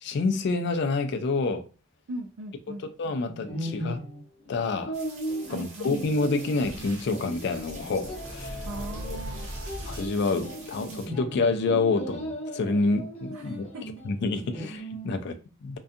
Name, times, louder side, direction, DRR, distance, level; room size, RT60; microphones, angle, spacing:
voice 1, 0.0-1.7 2.8-4.1 4.5-5.0 5.5-8.6 9.0-9.2 9.9-13.7 14.0-15.8, left 3 dB, 55° left, 0.3 m, -28 dB
voice 2, 2.1-2.9 5.5-5.9 8.6-9.5 13.3-13.8, right 1 dB, 90° right, 0.4 m, -39 dB
sound 1, 3.2-15.2, right 1 dB, 35° left, 0.8 m, -38 dB
sound 2, 4.9-11.1, right 3 dB, 35° right, 0.6 m, -47 dB
Boom, 6.6-11.0, equal, 60° right, 0.9 m, -40 dB
2.4 x 2.2 x 2.6 m
head